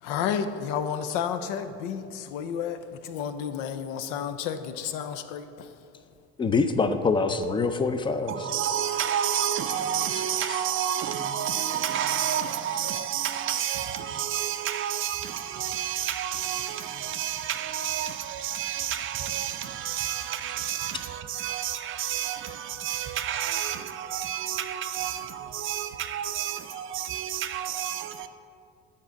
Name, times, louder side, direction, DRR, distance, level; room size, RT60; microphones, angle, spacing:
voice 1, 0.0-5.7, left 8 dB, 85° left, 0.6 m, -31 dB
voice 2, 6.4-8.3, left 4 dB, 15° left, 0.4 m, -24 dB
voice 3, 8.3-28.3, right 10 dB, 45° right, 0.5 m, -30 dB
7.5 x 4.1 x 6.3 m
cardioid pair, 115°, 29 cm